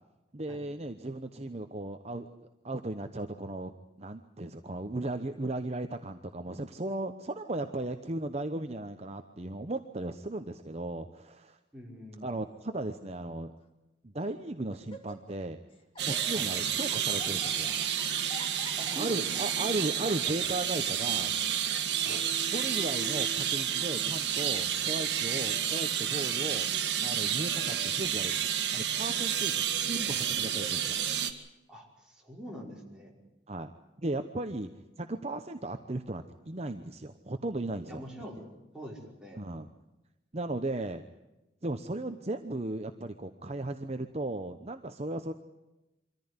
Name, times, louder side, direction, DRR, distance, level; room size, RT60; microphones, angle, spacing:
voice 1, 0.3-2.4 2.6-3.7 4.0-11.6 12.2-13.5 14.0-15.6 16.0-17.7 19.0-21.3 22.5-26.7 27.0-28.4 28.7-31.0 33.5-33.7 34.0-34.7 35.0-38.1 39.4-39.7 40.3-41.0 41.6-45.3, right 2 dB, 35° right, 7 dB, 0.9 m, -36 dB
voice 2, 11.7-12.4 16.3-16.5 18.8-19.5 22.0-22.2 31.7-33.1 37.9-38.5 38.7-39.5, equal, 5° right, -3 dB, 5.5 m, -44 dB
Laughter, 12.4-12.8 13.6-13.7 14.2-14.4 14.7-15.5 15.7-20.7, left 1 dB, 30° left, 2.6 m, -48 dB
sound 1, 16.0-31.3, right 9 dB, 60° right, 1.9 m, -30 dB
25.0 x 14.5 x 9.7 m, 0.99 s
head